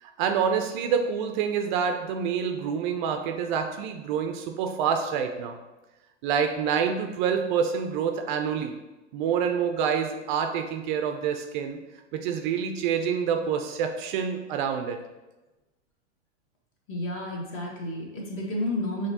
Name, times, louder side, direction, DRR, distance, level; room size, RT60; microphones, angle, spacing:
voice 1, 0.0-5.5 6.2-8.7 9.1-11.8 12.1-15.0, right 7 dB, 45° right, 5 dB, 0.4 m, -27 dB
voice 2, 16.9-19.1, left 1 dB, 35° left, -1 dB, 1.4 m, -31 dB
5.7 x 3.2 x 2.8 m, 1.1 s
hypercardioid pair, 115°, 35 cm